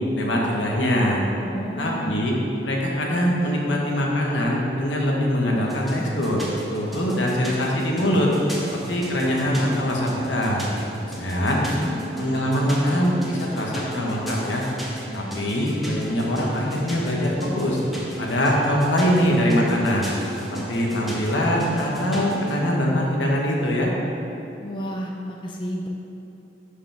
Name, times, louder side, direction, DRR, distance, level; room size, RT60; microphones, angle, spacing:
voice 1, 0.1-1.2 1.8-2.3 2.6-6.4 6.7-8.3 8.7-10.7 11.2-11.6 12.2-14.6 15.1-17.8 18.2-20.1 20.5-23.9, equal, 85° left, -2 dB, 1.3 m, -23 dB
voice 2, 1.4-2.3 11.0-12.0 24.6-25.9, equal, 25° left, -1 dB, 0.5 m, -32 dB
sound 1, 5.6-22.6, equal, ahead, 1.1 m, -35 dB
11.5 x 5.1 x 3.5 m, 2.8 s
head